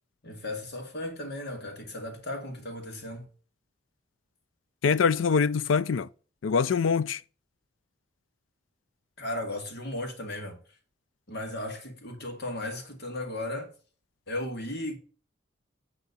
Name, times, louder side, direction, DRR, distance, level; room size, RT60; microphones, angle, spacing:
voice 1, 0.2-3.3 9.2-10.6 11.3-13.7 14.3-15.0, left 1 dB, 60° left, 2.1 m, -35 dB
voice 2, 4.8-6.1 6.4-7.2, left 5 dB, 85° left, 0.4 m, -24 dB
9.5 x 3.7 x 6.4 m
head